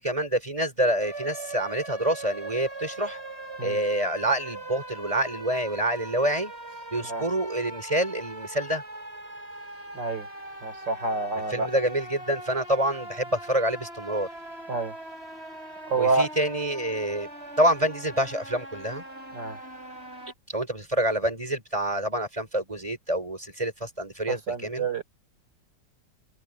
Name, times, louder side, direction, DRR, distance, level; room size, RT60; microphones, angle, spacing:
voice 1, 0.0-3.2 3.6-6.5 6.9-8.8 11.5-14.3 15.9-17.3 17.6-19.0 20.5-24.9, right 1 dB, 20° right, 5.5 m, -27 dB
sound 1, 1.0-20.3, right 2 dB, 35° right, 8.3 m, -41 dB
voice 2, 9.9-10.3 10.6-11.7 14.7-14.9 15.9-16.3 19.3-19.6 24.3-25.0, right 3 dB, 80° right, 4.9 m, -28 dB
omnidirectional pair, 1.9 m